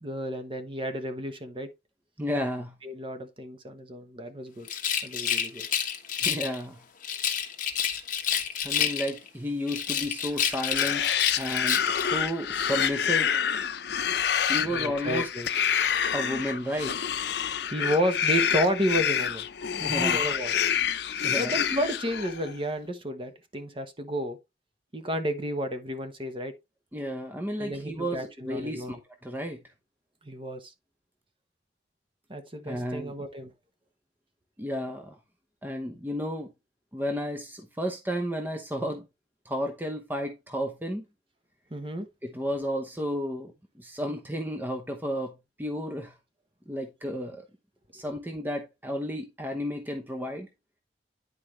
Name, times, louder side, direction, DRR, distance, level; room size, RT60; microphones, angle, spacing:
voice 1, 0.0-1.7 2.8-4.7 5.0-5.7 14.7-15.5 17.7-19.4 19.7-20.5 21.4-24.4 24.9-26.5 27.6-29.0 30.2-30.7 32.3-33.5 41.7-42.1, equal, 30° right, 1.1 m, -31 dB
voice 2, 2.2-2.7 6.2-6.8 8.6-11.1 11.4-13.3 14.5-15.3 16.1-17.0 19.8-20.3 21.2-21.6 26.9-29.0 29.2-29.6 32.6-33.1 34.6-35.2 35.6-36.5 36.9-39.0 39.4-41.0 42.2-43.5 43.8-45.3 45.6-46.1 46.7-47.5 47.9-50.5, equal, 10° right, 0.8 m, -32 dB
Rattle, 4.6-6.6 7.0-9.3 9.7-12.1, left 8 dB, 50° left, 1.3 m, -29 dB
sound 1, 10.5-22.5, left 8 dB, 65° left, 0.6 m, -27 dB
10.0 x 4.6 x 3.2 m
head